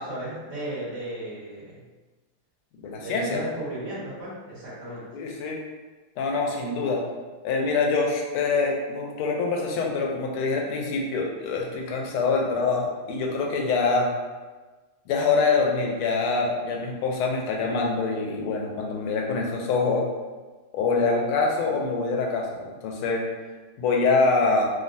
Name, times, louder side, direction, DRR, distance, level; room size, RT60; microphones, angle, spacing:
voice 1, 0.1-1.8 2.9-5.0, right 1 dB, 40° right, -10 dB, 1.3 m, -35 dB
voice 2, 2.8-3.4 5.1-5.6 6.2-7.0 7.4-14.1 15.1-20.1 20.7-23.2 23.8-24.7, left 4 dB, 85° left, 0 dB, 1.5 m, -25 dB
3.4 x 2.2 x 2.6 m, 1.3 s
omnidirectional pair, 2.3 m